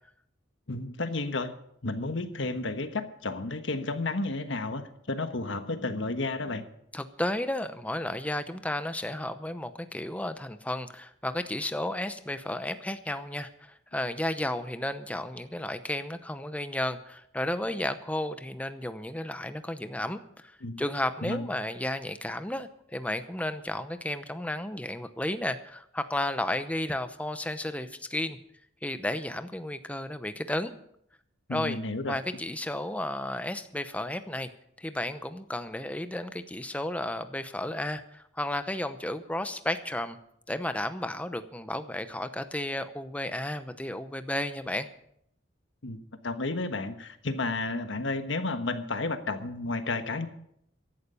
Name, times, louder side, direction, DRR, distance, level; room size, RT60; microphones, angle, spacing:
voice 1, 0.7-1.5 1.8-6.6 20.6-20.8 21.2-21.5 31.5-32.2 45.8-46.0 46.2-50.3, left 2 dB, 75° left, 9 dB, 1.3 m, -32 dB
voice 2, 6.9-28.4 28.8-30.7 31.5-31.8 32.0-34.5 34.8-40.2 40.5-44.9, left 1 dB, 5° left, 10 dB, 0.8 m, -33 dB
15.5 x 11.5 x 5.5 m, 0.73 s
head